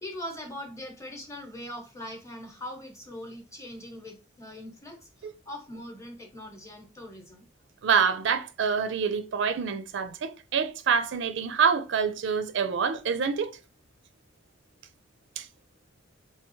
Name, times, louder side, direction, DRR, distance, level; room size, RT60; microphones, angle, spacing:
voice 1, 0.0-7.5, left 1 dB, 15° left, 0.9 m, -41 dB
voice 2, 7.8-13.5 15.4-15.5, right 6 dB, 60° right, 0.4 m, -26 dB
3.5 x 2.7 x 3.1 m
head